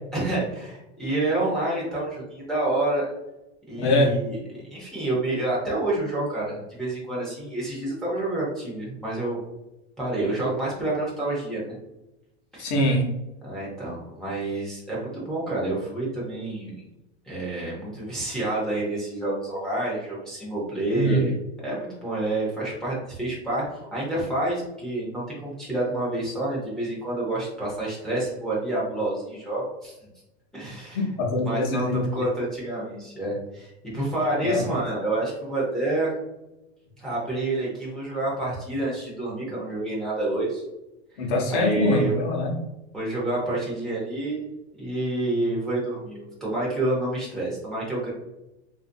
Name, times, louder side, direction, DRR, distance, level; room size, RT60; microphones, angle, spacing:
voice 1, 0.1-3.1 3.7-9.4 10.0-11.8 12.5-12.7 13.4-16.8 17.3-21.4 21.6-29.9 30.5-31.0 31.4-36.1 37.0-40.6 41.2-42.2 42.9-44.5 44.8-48.1, right 2 dB, ahead, -7 dB, 0.5 m, -28 dB
voice 2, 3.8-4.1 12.6-13.0 20.9-21.2 30.9-32.0 34.4-34.6 41.2-42.5, left 1 dB, 45° left, 0 dB, 0.8 m, -23 dB
3.5 x 2.5 x 2.5 m, 0.95 s
supercardioid pair, 175°, 34 cm